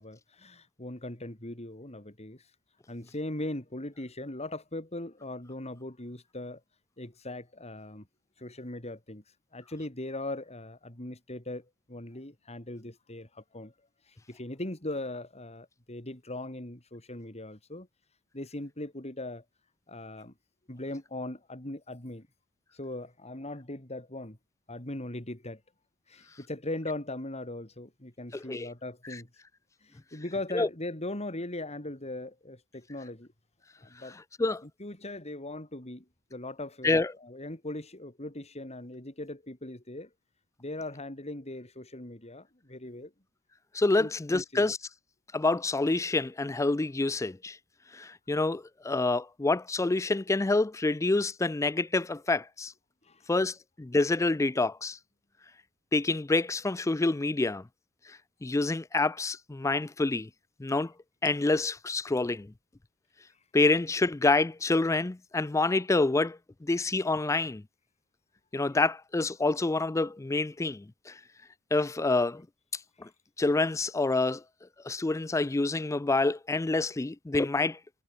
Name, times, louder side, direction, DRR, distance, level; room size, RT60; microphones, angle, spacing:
voice 1, 0.0-2.5 2.9-6.6 7.0-8.1 8.4-9.2 9.5-13.7 14.1-17.9 18.3-19.4 19.9-20.3 20.7-22.3 22.7-24.4 24.7-25.6 26.1-29.3 29.8-33.3 33.8-34.2 34.6-36.1 36.3-40.1 40.6-43.1 44.0-44.7 53.0-53.3, left 1 dB, 30° left, 3.8 m, -39 dB
voice 2, 28.3-28.7 30.5-30.7 34.4-34.6 36.8-37.1 43.7-44.8 45.3-47.6 47.9-52.7 53.3-55.0 55.9-57.6 58.4-60.3 60.6-60.9 61.2-62.5 63.5-67.6 68.5-71.1 71.7-72.4 73.0-73.1 73.4-74.4 74.8-77.8, left 3 dB, 15° left, 0.4 m, -27 dB
head